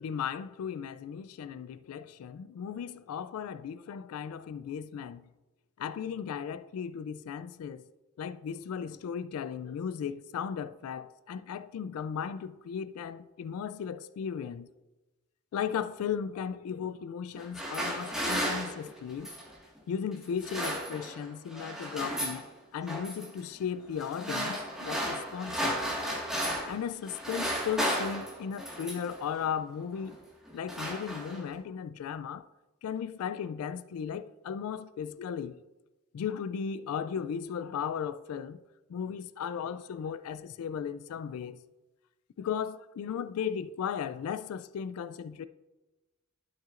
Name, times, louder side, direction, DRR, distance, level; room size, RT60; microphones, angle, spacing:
voice 1, 0.0-5.2 5.8-7.8 8.2-14.7 15.5-19.3 19.9-25.8 26.7-30.2 30.5-32.5 32.8-35.6 36.1-38.6 38.9-41.6 42.4-45.5, left 7 dB, 80° left, 0.3 m, -36 dB
sound 1, 17.3-19.5 20.2-21.3 21.5-22.4 22.9-23.3 24.0-26.8 27.1-29.2 29.9-30.2 30.5-31.5, equal, 5° right, 1.6 m, -34 dB
11.5 x 5.9 x 2.5 m
head